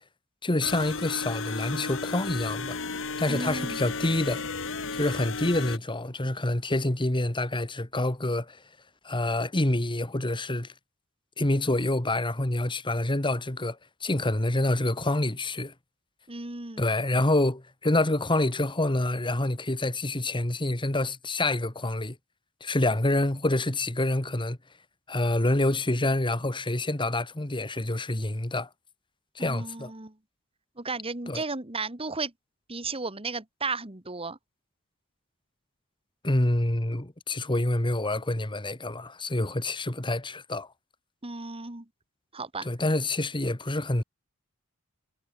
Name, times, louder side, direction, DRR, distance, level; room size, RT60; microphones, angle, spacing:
voice 1, 0.4-2.8 3.2-4.4 4.9-8.6 9.0-10.7 11.4-15.7 16.8-22.2 22.6-24.6 25.1-28.7 29.4-29.9 31.3-31.4 36.2-40.7 42.6-44.0, left 1 dB, 20° left, 1.7 m, -27 dB
sound 1, 0.6-5.8, left 4 dB, 60° left, 3.1 m, -34 dB
voice 2, 3.3-3.8 16.3-16.8 29.4-30.1 30.8-32.3 32.7-34.4 41.2-41.9 42.3-42.7, right 3 dB, 25° right, 2.0 m, -34 dB
head